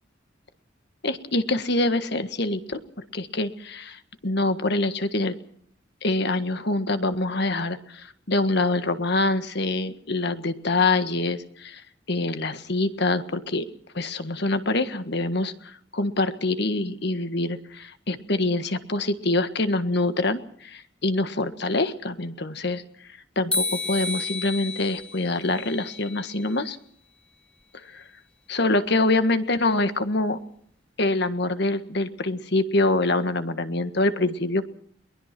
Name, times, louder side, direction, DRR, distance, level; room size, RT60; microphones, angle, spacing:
voice 1, 1.0-5.3 6.0-11.8 12.1-13.6 13.9-22.8 23.3-26.8 27.9-28.0 28.5-30.4 31.0-34.7, left 2 dB, 60° left, 10 dB, 1.6 m, -25 dB
sound 1, 23.5-26.6, left 3 dB, 5° left, 1.1 m, -31 dB
22.5 x 20.0 x 6.1 m, 0.63 s
head